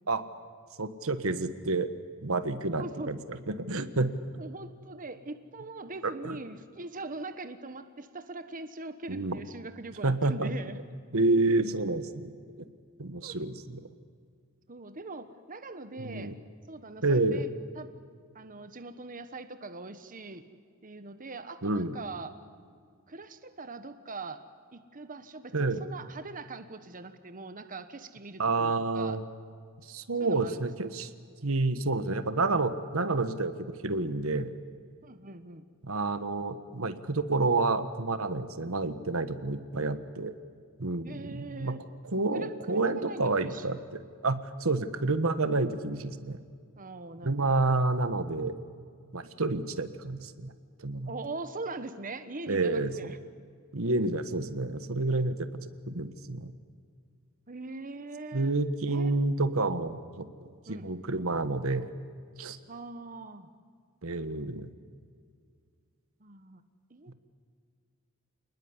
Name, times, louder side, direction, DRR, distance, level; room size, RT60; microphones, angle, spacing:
voice 1, 0.8-1.9 2.2-3.2 3.5-4.1 6.0-6.3 9.1-9.4 10.0-10.5 11.1-12.3 13.0-13.8 16.0-16.3 17.0-17.4 21.6-22.0 25.5-25.8 28.4-29.2 29.9-31.1 31.4-34.5 35.8-40.3 40.8-41.7 42.1-43.8 44.2-46.4 47.2-48.6 49.1-50.5 50.8-51.1 52.5-53.1 53.7-55.5 55.9-56.5 58.3-60.3 60.7-61.9 62.4-62.6 64.0-64.7, right 3 dB, 70° right, 10 dB, 1.4 m, -29 dB
voice 2, 2.8-3.1 4.4-10.8 13.2-13.4 14.7-16.3 16.7-17.5 17.7-17.9 18.3-20.4 20.8-22.4 23.1-24.4 24.7-29.2 30.2-30.7 35.0-35.6 41.0-41.8 42.3-43.6 46.8-47.5 51.1-53.2 57.5-58.5 58.9-59.2 60.7-60.9 62.7-63.5 66.2-66.6 66.9-67.1, right 3 dB, 40° right, 9 dB, 1.3 m, -42 dB
28.0 x 20.0 x 9.8 m, 2.1 s
head